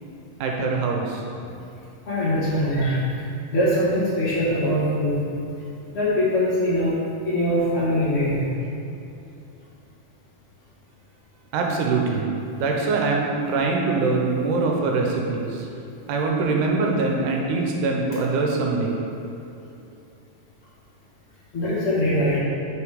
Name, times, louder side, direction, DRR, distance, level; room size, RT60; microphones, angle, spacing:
voice 1, 0.4-1.2 11.5-15.7 16.1-19.0, right 3 dB, 85° right, 0 dB, 2.2 m, -23 dB
voice 2, 2.0-3.0 3.5-5.2 5.9-7.0 7.2-8.5 21.5-22.4, equal, 40° left, -10 dB, 0.9 m, -22 dB
5.1 x 4.9 x 4.9 m, 2.7 s
omnidirectional pair, 3.7 m